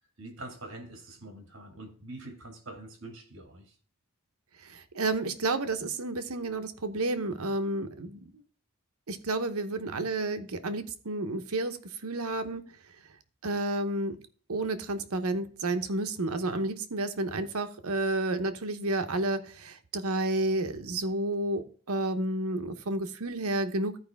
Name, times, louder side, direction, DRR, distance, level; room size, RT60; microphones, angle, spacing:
voice 1, 0.2-3.8, right 2 dB, 60° right, 2.2 m, -45 dB
voice 2, 4.6-8.4 9.1-12.6 13.4-14.2 14.5-24.0, right 2 dB, 80° right, 1.0 m, -31 dB
14.0 x 4.9 x 3.5 m
head